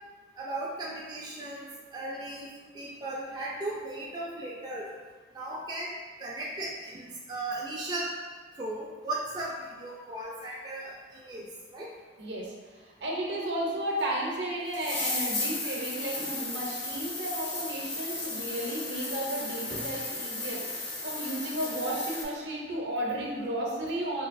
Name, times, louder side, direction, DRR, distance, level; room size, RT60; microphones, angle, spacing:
voice 1, 0.4-4.9 5.3-5.9 6.2-8.1 8.6-11.9 18.1-18.2 19.7-19.9, right 2 dB, 25° right, -5 dB, 0.3 m, -37 dB
voice 2, 12.2-24.3, right 1 dB, 70° right, -3 dB, 0.7 m, -33 dB
sound 1, 14.0-14.1 14.7-22.2, left 2 dB, 80° left, 0.9 m, -35 dB
3.1 x 3.0 x 2.5 m, 1.4 s
head